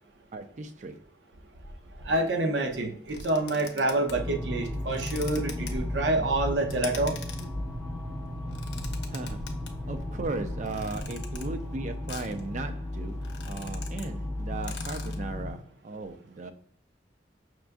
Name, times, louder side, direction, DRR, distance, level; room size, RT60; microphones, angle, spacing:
voice 1, 0.3-1.0 9.1-9.5 9.9-16.5, right 3 dB, 45° right, 0.4 m, -37 dB
voice 2, 2.0-7.2, right 2 dB, 80° right, 0.7 m, -27 dB
sound 1, 3.1-4.3 4.9-5.7 6.7-7.5 8.4-9.7 10.7-11.5 12.1-12.4 12.8-12.9 13.1-14.1 14.4-14.5 14.6-15.2, left 6 dB, 75° left, 0.7 m, -42 dB
sound 2, 4.1-15.5, left 1 dB, 15° left, 0.7 m, -35 dB
5.8 x 2.3 x 2.5 m
head